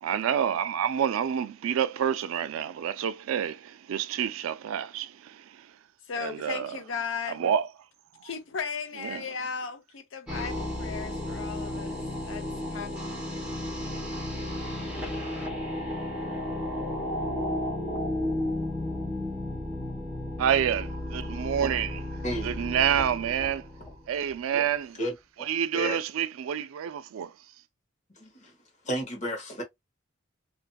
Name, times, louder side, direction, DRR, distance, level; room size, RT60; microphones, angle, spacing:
voice 1, 0.0-5.7 6.2-6.8 7.3-7.7 9.0-9.3 20.4-22.0 22.4-23.7 24.1-25.0 25.4-27.3, right 8 dB, 85° right, 0.3 m, -28 dB
voice 2, 6.1-7.4 8.2-12.0 12.3-12.9, left 6 dB, 65° left, 0.5 m, -36 dB
sound 1, 10.3-24.4, left 1 dB, 5° right, 1.0 m, -33 dB
voice 3, 28.2-28.5 28.8-29.6, equal, 35° left, 1.0 m, -32 dB
2.6 x 2.5 x 2.2 m
head